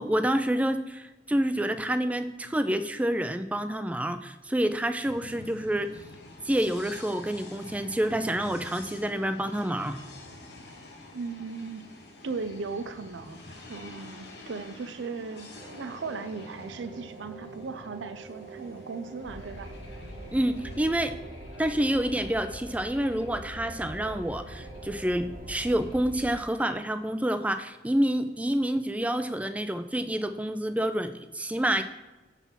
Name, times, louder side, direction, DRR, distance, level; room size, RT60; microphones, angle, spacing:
voice 1, 0.0-5.9 6.4-10.0 20.3-21.1 21.6-31.8, right 1 dB, 10° right, 10 dB, 0.4 m, -28 dB
sound 1, 5.0-20.9, left 2 dB, 65° left, 1.1 m, -48 dB
voice 2, 11.1-11.9 12.2-15.5 15.8-19.7, right 4 dB, 85° right, 9 dB, 0.5 m, -37 dB
sound 2, 15.5-25.8, right 3 dB, 45° right, 0.8 m, -47 dB
sound 3, 19.2-26.3, equal, 90° left, 1.6 m, -44 dB
7.0 x 4.1 x 5.5 m, 1.1 s
head